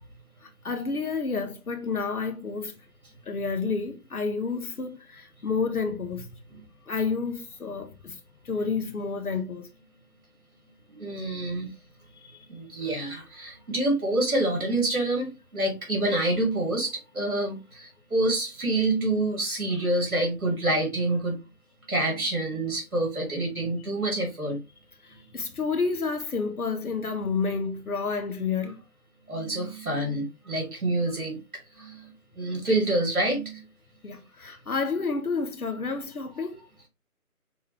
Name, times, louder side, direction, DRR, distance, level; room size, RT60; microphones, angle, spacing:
voice 1, 0.4-2.8 3.3-6.3 6.9-8.2 8.4-9.7 12.2-12.4 25.0-28.8 34.0-36.6, left 4 dB, 75° left, 0.9 m, -30 dB
voice 2, 10.9-11.7 12.5-21.4 21.9-24.6 29.3-31.4 31.7-33.7 36.3-36.4, right 2 dB, 65° right, 2.6 m, -27 dB
5.6 x 2.2 x 3.1 m
figure-of-eight pair, 160°, 45 cm